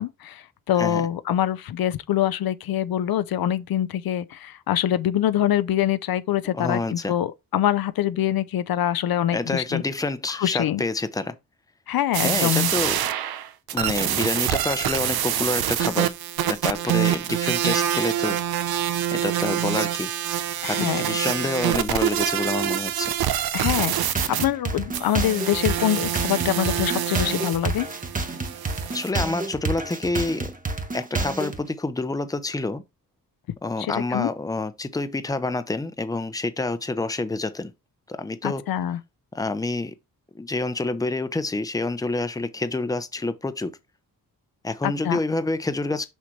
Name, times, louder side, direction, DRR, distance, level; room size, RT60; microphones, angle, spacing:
voice 1, 0.0-9.8 10.4-10.8 11.9-12.7 20.6-21.2 23.5-23.9 24.3-27.8 33.8-34.3 38.4-39.0 44.8-45.2, left 11 dB, 75° left, 0.7 m, -24 dB
voice 2, 6.5-7.1 9.3-11.3 12.2-13.0 13.7-16.1 16.5-18.4 19.1-20.1 20.7-23.1 28.9-30.5 30.9-32.8 33.6-37.7 38.1-38.6 39.3-39.9 40.3-43.8 44.6-46.1, left 2 dB, 10° left, 0.7 m, -27 dB
sound 1, 12.1-24.4 24.9-29.1, right 11 dB, 90° right, 0.8 m, -26 dB
sound 2, 23.7-31.6, right 3 dB, 25° right, 1.0 m, -29 dB
6.1 x 5.7 x 3.2 m
cardioid pair, 105°, 36 cm